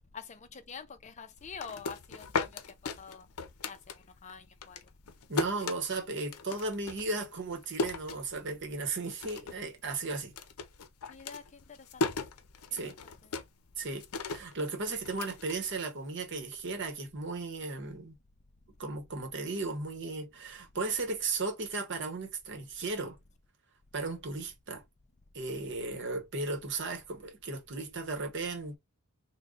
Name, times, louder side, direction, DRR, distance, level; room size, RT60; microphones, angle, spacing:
voice 1, 0.1-3.3 3.6-3.8 4.2-4.8 11.1-12.2 12.8-12.9, left 6 dB, 30° left, 0.5 m, -46 dB
sound 1, 1.4-4.3 4.6-8.8 9.1-9.7 9.9-16.2, left 3 dB, 85° left, 0.5 m, -37 dB
voice 2, 5.3-10.3 12.7-13.0 13.8-18.1 18.8-23.2 23.9-24.8 25.3-28.8, right 3 dB, 55° right, 0.9 m, -35 dB
3.6 x 2.1 x 3.7 m
head